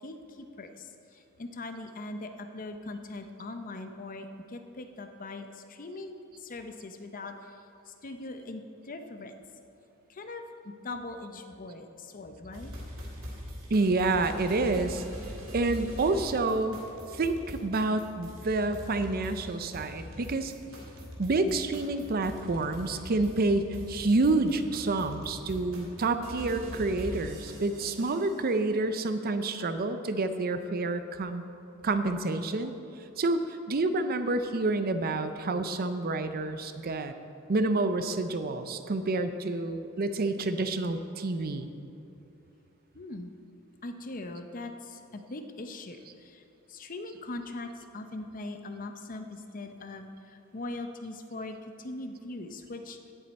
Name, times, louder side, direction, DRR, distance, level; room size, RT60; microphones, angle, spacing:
voice 1, 0.0-7.6 7.9-9.3 10.1-10.4 10.8-12.7 42.9-43.3 43.8-46.4 46.7-53.0, left 2 dB, 40° left, 7 dB, 0.7 m, -41 dB
sound 1, 12.5-28.4, equal, 65° right, 2.2 m, -43 dB
voice 2, 13.7-15.0 15.5-16.8 17.1-20.5 21.2-31.4 31.8-32.7 33.2-37.1 37.5-41.7, right 2 dB, 45° right, 9 dB, 0.5 m, -28 dB
16.0 x 7.4 x 4.2 m, 2.8 s
head